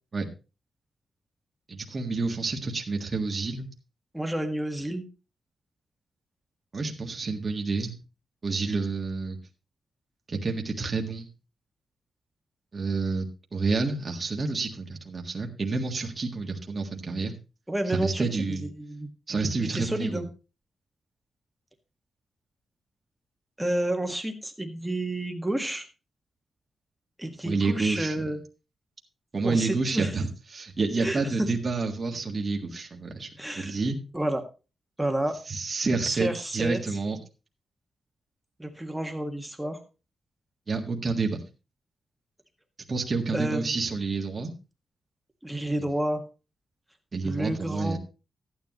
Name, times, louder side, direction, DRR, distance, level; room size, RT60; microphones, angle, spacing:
voice 1, 1.7-3.7 6.7-8.0 8.4-9.4 10.3-11.3 12.7-13.3 13.5-17.3 17.9-18.6 19.3-20.2 27.4-28.3 29.3-33.3 33.5-34.0 35.5-37.2 40.7-41.4 42.9-44.5 47.1-48.0, right 4 dB, 30° right, 1 dB, 1.6 m, -29 dB
voice 2, 4.1-5.0 17.7-19.1 19.6-20.2 23.6-25.8 27.2-28.4 29.4-30.1 31.0-31.5 33.4-33.8 34.1-34.4 35.0-35.4 36.0-36.8 38.6-39.8 43.3-43.8 45.4-46.2 47.2-48.0, right 1 dB, 5° right, 4 dB, 1.7 m, -30 dB
14.0 x 9.5 x 3.0 m, 0.31 s
wide cardioid pair, 155°, 0 cm